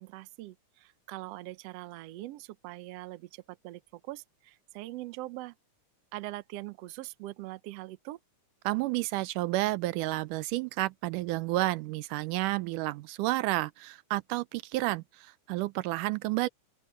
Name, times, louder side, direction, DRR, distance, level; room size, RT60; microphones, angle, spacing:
voice 1, 0.0-5.5 6.1-8.2, right 17 dB, 70° right, 1.6 m, -42 dB
voice 2, 8.7-16.5, right 18 dB, 90° right, 2.2 m, -31 dB
open air
omnidirectional pair, 3.6 m